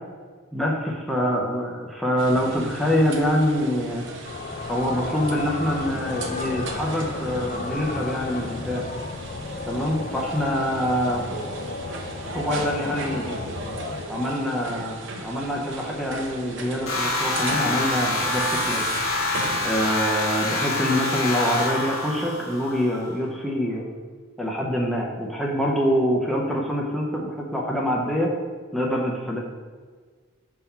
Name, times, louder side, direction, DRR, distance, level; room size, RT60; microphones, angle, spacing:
voice 1, 0.5-4.1 4.7-8.8 9.7-11.2 12.3-13.3 14.1-18.9 19.6-23.9 24.4-28.3 28.7-29.4, equal, ahead, -3 dB, 0.6 m, -25 dB
sound 1, 2.2-19.8, right 2 dB, 60° right, 0.7 m, -37 dB
sound 2, 4.2-14.0, left 3 dB, 40° left, 0.4 m, -33 dB
sound 3, 16.9-23.0, left 2 dB, 85° left, 1.4 m, -26 dB
5.8 x 3.7 x 5.6 m, 1.6 s
head